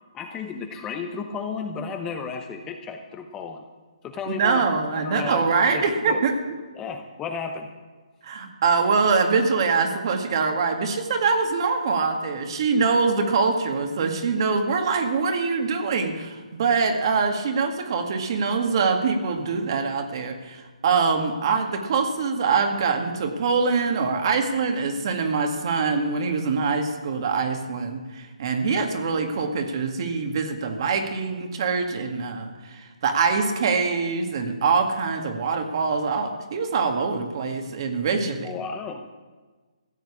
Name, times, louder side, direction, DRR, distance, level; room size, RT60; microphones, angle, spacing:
voice 1, 0.1-3.6 4.0-4.6 5.0-6.2 6.7-7.7 38.4-39.1, left 5 dB, 15° left, 5 dB, 0.8 m, -33 dB
voice 2, 4.3-6.6 8.2-38.4, right 4 dB, 40° right, 5 dB, 1.9 m, -24 dB
15.0 x 8.1 x 8.2 m, 1.4 s
hypercardioid pair, 160°, 4 cm